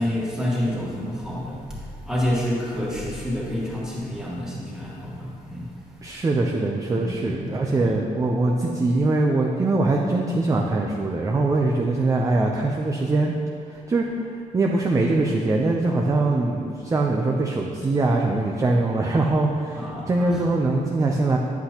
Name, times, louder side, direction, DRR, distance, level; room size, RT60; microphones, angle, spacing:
voice 1, 0.0-5.7 6.9-7.4 7.8-8.0 19.7-20.4, left 1 dB, 5° right, -6 dB, 1.8 m, -28 dB
voice 2, 6.0-13.3 13.7-21.4, right 2 dB, 25° right, 0 dB, 0.5 m, -22 dB
9.7 x 8.1 x 2.9 m, 2.3 s
wide cardioid pair, 155°, 14 cm